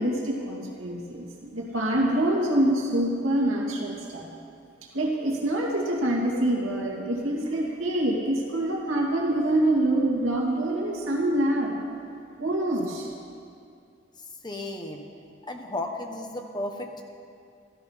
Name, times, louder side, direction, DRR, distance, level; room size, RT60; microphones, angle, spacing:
voice 1, 0.0-4.3 4.9-11.9 12.4-13.1, right 1 dB, 85° right, -2 dB, 2.4 m, -25 dB
voice 2, 14.4-15.1 15.5-17.0, left 1 dB, 20° left, 3 dB, 1.2 m, -34 dB
14.0 x 14.0 x 5.6 m, 2.4 s
head